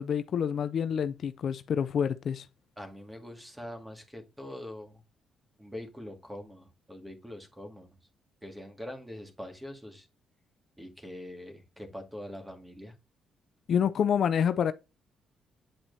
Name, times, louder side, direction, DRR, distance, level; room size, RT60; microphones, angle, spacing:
voice 1, 0.0-2.5 13.7-14.7, left 8 dB, 60° left, 0.4 m, -27 dB
voice 2, 2.8-5.0 5.6-8.0 8.4-10.1 10.8-12.9, left 1 dB, 10° right, 2.0 m, -43 dB
8.9 x 4.3 x 2.7 m
cardioid pair, 90°, 0 cm